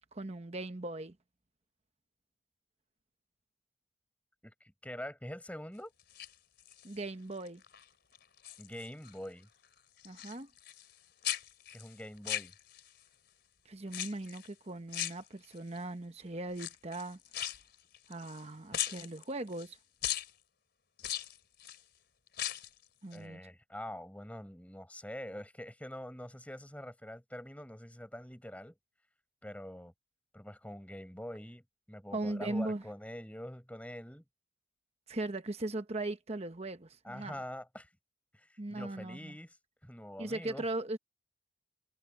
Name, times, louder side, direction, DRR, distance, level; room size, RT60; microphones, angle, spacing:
voice 1, 0.1-1.1 6.8-7.6 10.0-10.5 13.6-17.2 18.1-19.8 23.0-23.4 32.1-32.8 35.1-37.4 38.6-39.3 40.2-41.0, right 2 dB, 30° right, 1.0 m, -39 dB
voice 2, 4.4-5.9 8.6-9.5 11.7-12.5 23.1-28.7 29.4-29.9 30.3-34.2 37.0-37.9 38.3-39.6 39.8-40.6, equal, 5° left, 6.4 m, -45 dB
sound 1, 6.0-7.0 7.4-7.8 8.1-9.2 9.4-11.0 11.2-13.0 13.9-14.5 14.9-15.8 16.5-18.4 18.7-19.7 20.0-20.3 21.0-21.8 22.3-22.8 23.1-23.2, left 12 dB, 55° left, 4.2 m, -39 dB
head